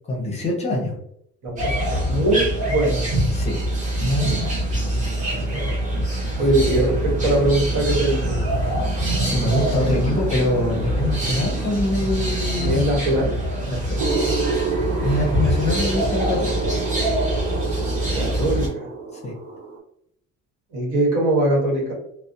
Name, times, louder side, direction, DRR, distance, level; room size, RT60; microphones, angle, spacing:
voice 1, 0.1-0.9 3.3-3.6 4.0-4.5 9.2-12.9 13.7-14.0 15.0-16.6 19.2-19.3, left 1 dB, 20° left, -2 dB, 0.6 m, -24 dB
voice 2, 1.4-3.0 5.5-5.6 6.4-8.4 12.6-13.3 18.1-18.9 20.7-21.9, right 1 dB, 75° right, -2 dB, 1.1 m, -21 dB
sound 1, 1.6-18.7, right 1 dB, 25° right, 0.8 m, -24 dB
sound 2, 14.0-19.8, right 4 dB, 90° right, 0.8 m, -28 dB
2.5 x 2.0 x 2.5 m, 0.73 s
cardioid pair, 150°, 31 cm